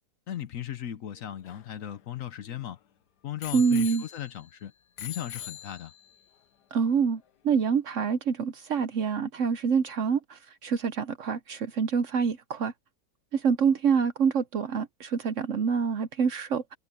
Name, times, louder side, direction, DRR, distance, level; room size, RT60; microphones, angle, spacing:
voice 1, 0.3-2.8 3.2-4.7 5.0-5.9, left 11 dB, 60° left, 1.0 m, -37 dB
Bicycle bell, 1.1-2.8 3.4-4.6 5.0-6.2 7.0-7.1, left 10 dB, 80° left, 1.5 m, -43 dB
voice 2, 3.5-4.0 6.7-12.7 13.3-16.8, right 6 dB, 60° right, 0.9 m, -26 dB
omnidirectional pair, 1.8 m